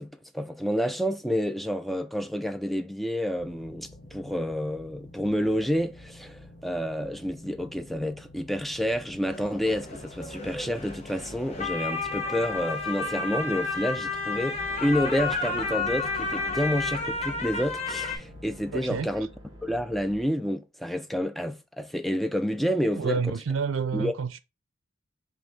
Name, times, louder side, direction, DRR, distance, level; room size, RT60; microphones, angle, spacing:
voice 1, 0.0-19.3 19.6-23.2 23.9-24.1, equal, ahead, 0.3 m, -29 dB
sound 1, 3.4-19.0, left 1 dB, 65° left, 1.0 m, -49 dB
sound 2, 9.3-18.2, left 3 dB, 30° left, 0.8 m, -31 dB
sound 3, 14.5-20.2, equal, 25° right, 1.2 m, -46 dB
voice 2, 18.7-19.1 23.0-24.4, right 6 dB, 85° right, 0.4 m, -29 dB
5.2 x 2.4 x 3.5 m
head